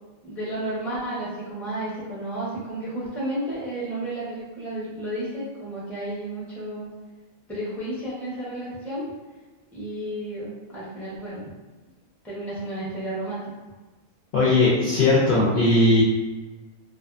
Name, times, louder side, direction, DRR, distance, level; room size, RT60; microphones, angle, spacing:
voice 1, 0.2-6.9 7.5-9.1 9.7-11.5 12.2-13.4, right 1 dB, ahead, -7 dB, 0.5 m, -32 dB
voice 2, 14.3-16.0, left 2 dB, 60° left, -7 dB, 0.6 m, -18 dB
2.5 x 2.4 x 2.4 m, 1.2 s
omnidirectional pair, 1.4 m